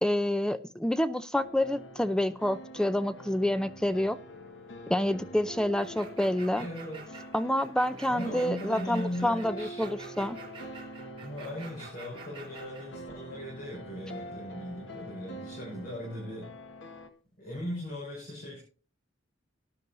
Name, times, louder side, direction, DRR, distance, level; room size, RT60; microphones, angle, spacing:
voice 1, 0.0-4.2 4.9-6.7 7.3-10.4, left 1 dB, 5° left, 12 dB, 0.5 m, -28 dB
sound 1, 1.4-17.1, equal, 80° left, 1.5 m, -45 dB
sound 2, 5.8-12.9, right 4 dB, 30° right, 3.9 m, -48 dB
voice 2, 6.6-7.1 8.1-9.8 11.2-16.5 17.4-18.6, left 1 dB, 50° left, -5 dB, 6.2 m, -38 dB
19.0 x 11.0 x 2.7 m, 0.38 s
head